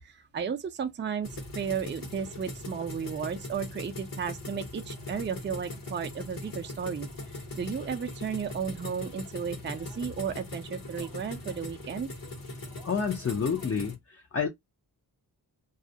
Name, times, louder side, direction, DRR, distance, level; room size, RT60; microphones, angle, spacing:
voice 1, 0.0-12.1, right 7 dB, 30° right, 0.4 m, -34 dB
sound 1, 1.2-13.9, left 2 dB, 55° left, 1.0 m, -41 dB
voice 2, 12.8-14.5, left 6 dB, 35° left, 0.5 m, -29 dB
2.3 x 2.0 x 2.6 m
wide cardioid pair, 75°, 42 cm